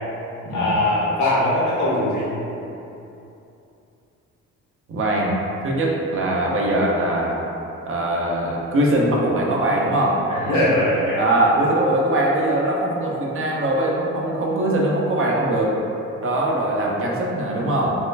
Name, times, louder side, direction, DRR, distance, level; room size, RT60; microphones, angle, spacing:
voice 1, 0.5-2.3 10.3-11.2, left 1 dB, 75° left, -7 dB, 1.2 m, -21 dB
voice 2, 4.9-7.4 7.9-10.2 11.2-15.8 16.2-17.9, right 1 dB, 45° right, -3 dB, 0.6 m, -21 dB
4.2 x 2.4 x 2.3 m, 2.8 s
cardioid pair, 90°, 30 cm